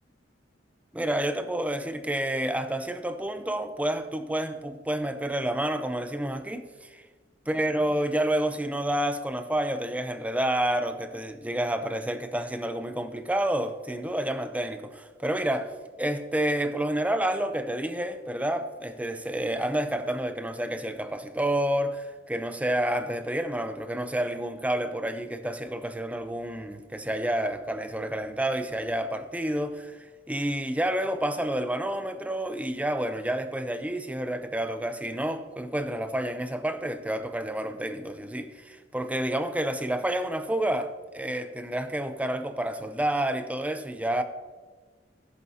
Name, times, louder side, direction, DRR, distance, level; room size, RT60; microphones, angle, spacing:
voice 1, 0.9-7.0 7.5-15.7 16.0-30.0 30.3-44.2, right 1 dB, 10° right, 0.6 m, -29 dB
13.0 x 11.0 x 2.8 m
head